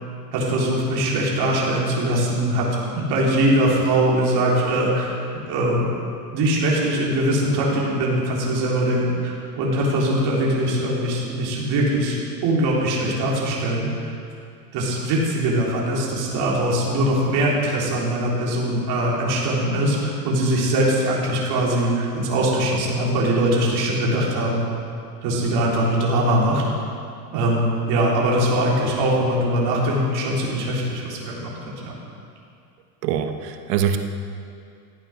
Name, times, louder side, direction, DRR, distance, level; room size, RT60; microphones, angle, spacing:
voice 1, 0.3-5.9 6.3-14.1 14.7-24.6 25.2-26.6 27.3-31.9, right 1 dB, 50° right, -4 dB, 3.7 m, -22 dB
voice 2, 33.0-34.0, right 8 dB, 75° right, 7 dB, 1.4 m, -23 dB
14.5 x 9.1 x 6.4 m, 2.4 s
supercardioid pair, 115°, 49 cm